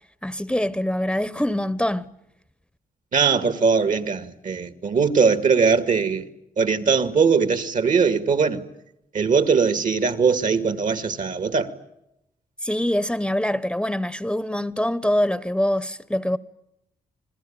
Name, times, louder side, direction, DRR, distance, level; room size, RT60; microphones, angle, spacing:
voice 1, 0.2-2.1 12.6-16.4, left 1 dB, 5° left, 0.9 m, -24 dB
voice 2, 3.1-6.2 6.6-8.6 9.1-11.7, right 5 dB, 60° right, 2.2 m, -20 dB
29.5 x 20.5 x 8.8 m
cardioid pair, 75°, 15 cm